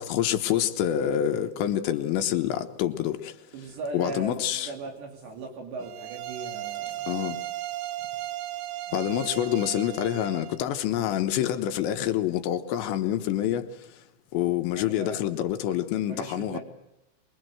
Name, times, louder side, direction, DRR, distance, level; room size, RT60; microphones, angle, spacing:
voice 1, 0.0-3.3 3.9-4.7 7.1-7.4 8.9-13.7 14.3-16.6, left 11 dB, 75° left, 3.3 m, -27 dB
voice 2, 3.5-7.1 14.8-15.2 16.0-16.6, right 3 dB, 65° right, 5.4 m, -38 dB
sound 1, 5.8-10.6, right 14 dB, 85° right, 3.5 m, -36 dB
25.5 x 22.0 x 7.9 m
omnidirectional pair, 5.4 m